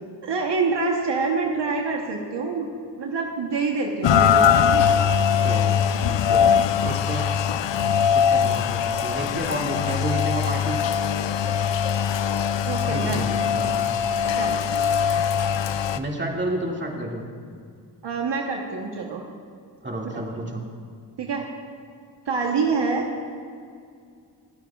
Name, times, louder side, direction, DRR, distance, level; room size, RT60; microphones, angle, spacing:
voice 1, 0.2-2.7 3.0-5.1 12.6-13.3 14.3-14.6 18.0-19.2 20.0-20.4 21.2-21.5 22.3-23.1, right 4 dB, 70° right, 1 dB, 1.1 m, -26 dB
Rain, 4.0-16.0, left 8 dB, 75° left, 0.6 m, -21 dB
voice 2, 5.4-5.8 6.1-6.4 6.8-7.3 8.3-10.8 12.9-13.9 15.9-17.2 19.8-20.6, right 1 dB, 25° right, -1 dB, 2.3 m, -30 dB
26.0 x 9.0 x 2.4 m, 2.2 s
cardioid pair, 55°, 44 cm